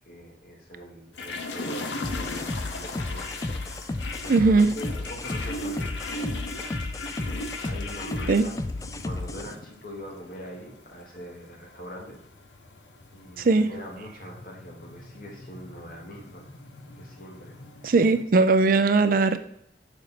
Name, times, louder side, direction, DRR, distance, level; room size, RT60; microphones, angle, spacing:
voice 1, 0.0-3.3 3.7-6.3 7.2-8.6 8.9-12.2 13.1-16.4 17.0-17.6 18.5-18.8, equal, 55° left, -1 dB, 1.8 m, -42 dB
sound 1, 1.1-18.2, left 2 dB, 85° left, 0.8 m, -39 dB
sound 2, 2.0-9.5, left 2 dB, 20° left, 0.3 m, -33 dB
voice 2, 4.3-4.7 8.3-8.4 13.4-13.7 17.8-19.4, right 3 dB, 50° right, 11 dB, 0.4 m, -19 dB
6.7 x 5.2 x 4.1 m, 0.71 s
head